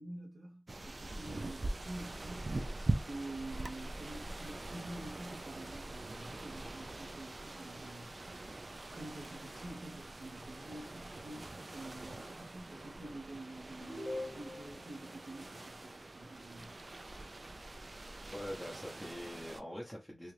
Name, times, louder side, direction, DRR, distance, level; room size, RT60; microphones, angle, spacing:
voice 1, 0.0-2.7 3.0-8.5 8.9-16.8, right 1 dB, 70° right, 1.0 m, -48 dB
sound 1, 0.7-19.6, right 2 dB, 45° right, 0.3 m, -43 dB
sound 2, 13.8-14.8, left 1 dB, 45° left, 0.8 m, -41 dB
voice 2, 18.3-20.3, equal, ahead, 0.7 m, -44 dB
2.8 x 2.4 x 3.2 m
wide cardioid pair, 65°, 0 cm